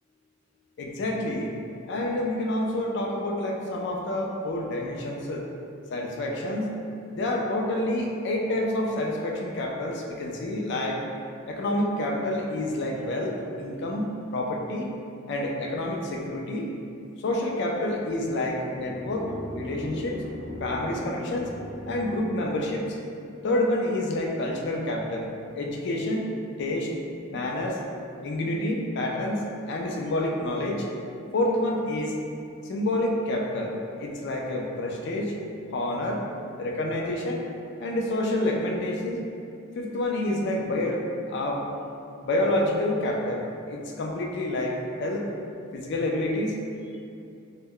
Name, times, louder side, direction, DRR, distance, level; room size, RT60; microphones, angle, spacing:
voice 1, 0.8-1.6 1.9-5.4 5.9-6.8 7.1-11.0 11.5-14.9 15.3-16.7 17.2-19.3 19.6-20.2 20.6-21.5 21.9-23.0 23.4-25.3 25.6-26.3 26.6-26.9 27.3-27.8 28.2-30.9 31.3-32.2 32.7-35.3 35.7-36.2 36.6-37.4 37.8-39.2 39.8-41.7 42.2-45.3 45.7-46.6, left 1 dB, 60° left, 0 dB, 0.4 m, -28 dB
sound 1, 17.9-22.9, left 1 dB, 50° right, 0.9 m, -39 dB
2.1 x 2.1 x 3.5 m, 2.5 s
head